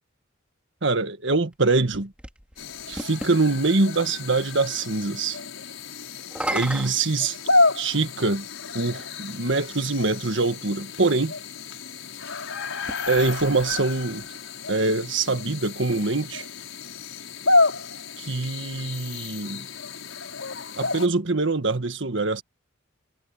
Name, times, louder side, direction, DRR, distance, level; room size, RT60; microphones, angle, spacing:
voice 1, 0.8-2.1 2.9-5.4 6.5-7.3 7.7-8.5 8.7-11.3 13.1-14.2 14.7-16.5 18.2-19.7 20.8-22.4, right 3 dB, 65° right, 1.7 m, -24 dB
sound 1, 1.5-3.4 6.2-8.0 8.9-9.0 12.7-14.3, right 1 dB, 5° right, 3.8 m, -35 dB
sound 2, 2.6-21.1, left 3 dB, 85° left, 5.8 m, -29 dB
head